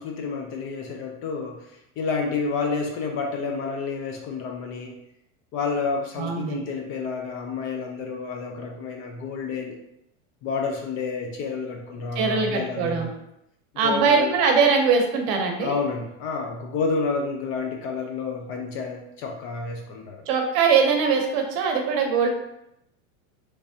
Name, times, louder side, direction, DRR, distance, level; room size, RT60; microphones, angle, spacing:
voice 1, 0.0-4.9 5.5-9.8 10.4-13.1 13.7-14.4 15.6-20.2, left 4 dB, 35° left, 2 dB, 0.4 m, -29 dB
voice 2, 6.2-6.6 12.2-13.1 13.8-15.8 20.3-22.3, right 5 dB, 50° right, 3 dB, 0.8 m, -21 dB
3.3 x 3.2 x 2.7 m, 0.83 s
supercardioid pair, 135°, 40 cm